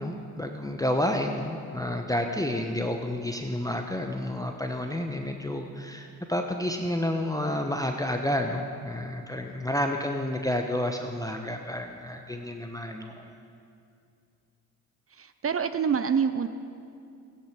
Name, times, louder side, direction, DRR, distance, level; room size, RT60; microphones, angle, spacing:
voice 1, 0.0-13.3, left 1 dB, 10° left, 4 dB, 1.0 m, -30 dB
voice 2, 15.1-16.5, right 6 dB, 30° right, 11 dB, 0.6 m, -26 dB
14.5 x 10.5 x 5.0 m, 2.5 s
hypercardioid pair, 50°, 43 cm